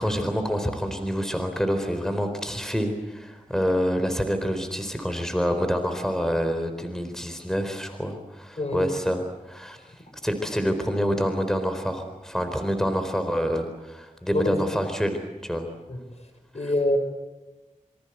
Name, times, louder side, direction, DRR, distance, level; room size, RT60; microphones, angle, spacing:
voice 1, 0.0-9.9 10.2-15.7 16.5-16.7, equal, 5° left, 7 dB, 4.0 m, -27 dB
voice 2, 16.5-17.0, left 1 dB, 55° left, 6 dB, 6.1 m, -24 dB
27.5 x 25.5 x 8.0 m, 1.0 s
wide cardioid pair, 60°, 13 cm